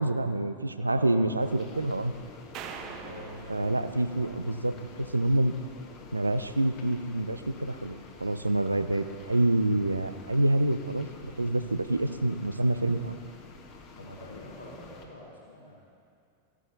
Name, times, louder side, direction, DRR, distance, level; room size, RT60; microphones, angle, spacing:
voice 1, 0.0-2.1 3.5-4.8 5.1-5.6 6.1-13.2, right 1 dB, 80° right, 11 dB, 0.4 m, -27 dB
voice 2, 0.7-1.3 2.7-3.6 13.9-15.8, left 1 dB, 80° left, -5 dB, 1.9 m, -44 dB
sound 1, 1.4-15.1, left 4 dB, 40° left, 1.1 m, -49 dB
sound 2, 2.5-4.9, right 7 dB, 35° right, 0.7 m, -44 dB
13.5 x 11.0 x 2.6 m, 2.3 s
figure-of-eight pair, 90°, 0 cm